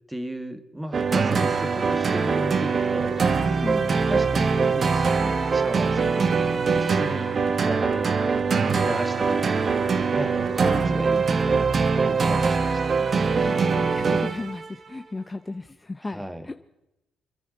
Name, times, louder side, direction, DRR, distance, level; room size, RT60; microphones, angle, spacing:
voice 1, 0.1-3.2 4.1-7.3 7.6-8.1 8.8-9.5 10.1-12.8 16.1-16.6, equal, 10° right, 8 dB, 1.6 m, -34 dB
sound 1, 0.9-14.7, right 5 dB, 45° right, 1.1 m, -23 dB
voice 2, 3.6-4.1 13.4-16.6, left 2 dB, 20° left, 9 dB, 0.7 m, -35 dB
29.0 x 10.5 x 3.9 m, 0.89 s
cardioid pair, 90°, 0 cm